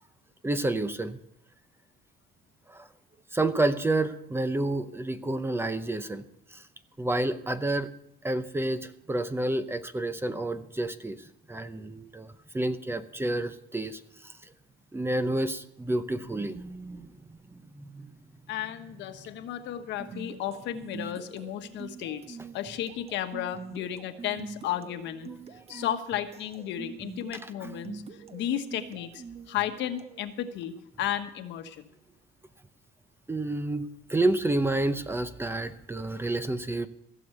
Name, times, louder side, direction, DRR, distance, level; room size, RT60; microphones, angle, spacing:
voice 1, 0.4-1.2 2.7-2.9 3.3-6.2 6.5-6.6 7.0-7.9 8.2-11.2 11.5-14.5 14.9-18.1 25.7-25.8 27.6-27.7 33.3-36.9, right 2 dB, 10° right, 12 dB, 0.7 m, -30 dB
voice 2, 18.5-25.3 25.7-28.0 28.3-31.9, left 11 dB, 65° left, 8 dB, 1.3 m, -34 dB
sound 1, 20.0-30.2, right 5 dB, 30° right, 1.1 m, -45 dB
16.0 x 7.1 x 7.8 m, 0.76 s
cardioid pair, 115°, 20 cm